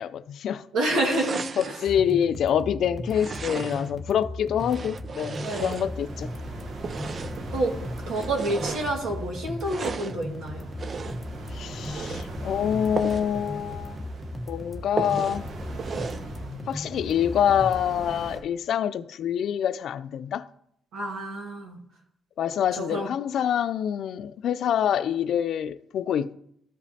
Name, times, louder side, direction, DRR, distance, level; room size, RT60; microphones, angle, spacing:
voice 1, 0.0-0.6 0.9-1.2 1.6-6.3 11.5-14.0 14.5-15.4 16.7-20.4 22.4-26.3, left 9 dB, 65° left, 0.3 m, -26 dB
voice 2, 0.7-1.4 5.4-5.8 7.5-7.7 8.1-10.7 16.4-16.6 20.9-21.8 22.8-23.1, right 1 dB, 85° right, 1.7 m, -28 dB
sound 1, 1.1-1.9 3.1-4.0 4.5-6.2 6.8-7.5 8.1-9.0 9.6-10.2 10.8-11.3 11.8-12.3 12.9-13.3 13.7-13.8 14.1-14.2 15.0-15.4 15.8-16.3, right 5 dB, 35° right, 0.3 m, -35 dB
sound 2, 1.8-17.8, left 1 dB, ahead, 0.8 m, -37 dB
sound 3, 5.4-18.4, right 2 dB, 55° right, 1.0 m, -41 dB
13.5 x 5.0 x 2.8 m
cardioid pair, 135°, 0 cm